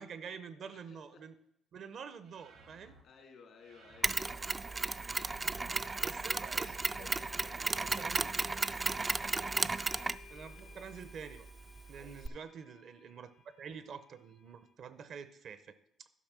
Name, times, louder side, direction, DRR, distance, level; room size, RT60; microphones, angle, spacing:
voice 1, 0.0-1.3 1.7-3.0 6.0-7.1 7.7-8.3 10.3-11.5 11.9-16.1, right 6 dB, 65° right, 13 dB, 0.7 m, -48 dB
voice 2, 0.7-1.2 2.7-4.4 5.5-5.8 6.6-8.6 9.2-9.5 11.9-12.4, left 5 dB, 75° left, 2 dB, 2.3 m, -59 dB
sound 1, 2.2-3.0 3.6-4.4 4.9-5.7 6.3-7.1, right 3 dB, 90° right, 1.7 m, -59 dB
Mechanisms, 4.0-12.3, right 3 dB, 25° right, 0.3 m, -35 dB
sound 2, 9.9-14.7, left 7 dB, 55° left, 0.9 m, -60 dB
11.0 x 4.9 x 6.1 m, 0.75 s
cardioid pair, 90°, 0 cm